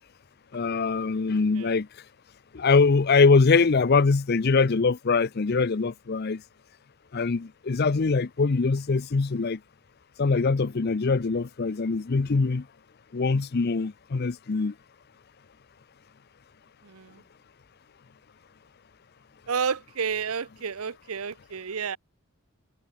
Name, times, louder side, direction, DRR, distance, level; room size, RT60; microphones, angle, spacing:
voice 1, 0.5-1.9 2.5-6.4 7.1-9.6 10.2-12.6 13.1-14.7, left 4 dB, 45° left, 0.5 m, -23 dB
voice 2, 19.5-22.0, right 6 dB, 75° right, 0.8 m, -30 dB
head